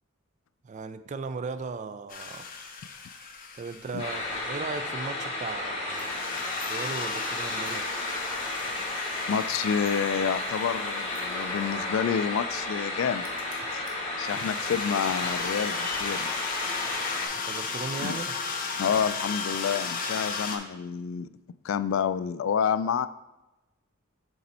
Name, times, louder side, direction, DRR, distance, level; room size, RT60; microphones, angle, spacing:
voice 1, 0.6-2.5 3.5-7.9 17.3-18.3, right 4 dB, 35° right, 11 dB, 0.3 m, -37 dB
sound 1, 2.1-4.6 5.9-12.0 13.4-13.5 14.3-20.6, left 5 dB, 45° left, 0.7 m, -35 dB
sound 2, 4.0-17.3, left 2 dB, 30° left, 1.6 m, -33 dB
sound 3, 5.9-6.7 7.0-7.3 7.6-7.7 8.2-8.3 8.5-10.0 10.4-11.8 12.2-12.3 12.6-12.9 13.2-14.0, right 4 dB, 70° right, 1.2 m, -51 dB
voice 2, 9.3-13.3 13.7-13.8 14.2-16.3 18.0-18.2 18.8-21.3 21.6-23.1, left 7 dB, 65° left, 14 dB, 0.3 m, -28 dB
6.8 x 4.1 x 4.1 m, 1.0 s
head